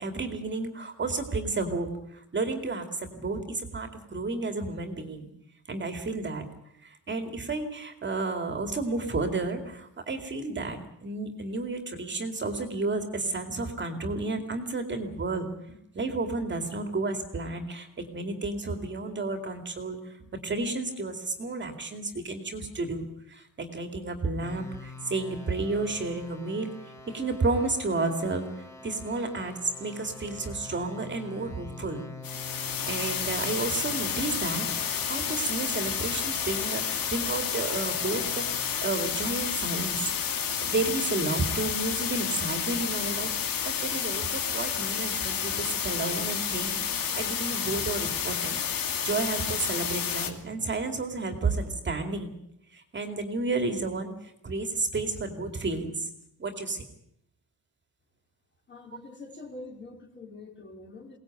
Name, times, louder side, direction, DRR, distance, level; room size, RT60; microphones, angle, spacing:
voice 1, 0.0-5.3 5.7-6.5 6.8-20.2 20.4-26.7 27.1-32.0 32.8-40.0 40.6-52.3 52.7-56.1 56.4-56.9, right 3 dB, 30° right, 5 dB, 2.5 m, -32 dB
sound 1, 24.4-38.8, left 3 dB, 5° left, 3.4 m, -45 dB
sound 2, 32.2-50.3, left 7 dB, 65° left, 2.5 m, -30 dB
voice 2, 58.7-61.2, left 2 dB, 30° left, 2 dB, 3.8 m, -44 dB
23.0 x 18.5 x 9.1 m, 0.76 s
wide cardioid pair, 160°, 37 cm